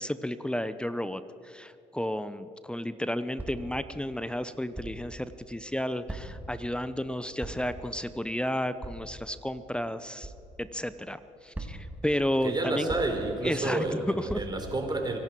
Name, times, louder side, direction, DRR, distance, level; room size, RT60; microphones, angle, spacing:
voice 1, 0.0-10.3 10.6-12.9 13.4-14.4, left 1 dB, 5° left, 13 dB, 0.8 m, -32 dB
sound 1, 3.4-3.7 4.7-5.0 6.1-6.5 7.4-7.8 8.8-9.0 10.2-10.4 11.5-12.0 12.9-13.3 14.3-14.5, right 1 dB, 10° right, 2.6 m, -39 dB
voice 2, 12.4-15.2, right 2 dB, 30° right, 3 dB, 3.9 m, -30 dB
25.0 x 12.0 x 4.7 m, 2.6 s
hypercardioid pair, 55°, 15 cm